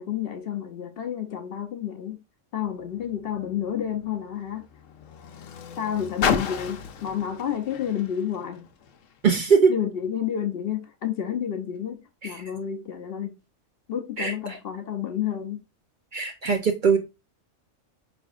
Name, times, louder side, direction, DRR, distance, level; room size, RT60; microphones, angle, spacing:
voice 1, 0.0-2.2 2.5-4.7 5.8-8.7 9.7-13.4 13.9-15.6, left 9 dB, 60° left, 0.7 m, -30 dB
Car, 2.6-9.2 10.0-10.1, left 7 dB, 80° left, 1.0 m, -33 dB
voice 2, 9.2-9.7 12.2-12.4 14.2-14.6 16.1-17.0, right 6 dB, 50° right, 0.6 m, -21 dB
4.9 x 3.4 x 2.4 m
omnidirectional pair, 1.3 m